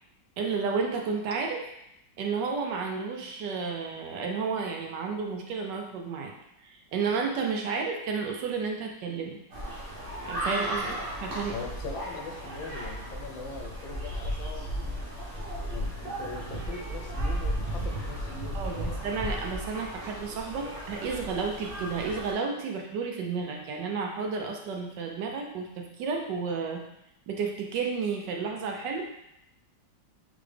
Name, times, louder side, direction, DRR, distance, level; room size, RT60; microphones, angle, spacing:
voice 1, 0.4-1.7 2.2-6.3 6.6-9.4 10.3-10.9 11.2-11.6 18.5-26.8 27.3-29.0, right 5 dB, 70° right, 2 dB, 1.3 m, -32 dB
sound 1, 9.5-22.3, equal, 45° right, 1.4 m, -35 dB
voice 2, 11.5-14.6 15.7-19.1, left 4 dB, 90° left, 2 dB, 1.5 m, -41 dB
4.0 x 3.9 x 3.3 m, 0.81 s
omnidirectional pair, 2.0 m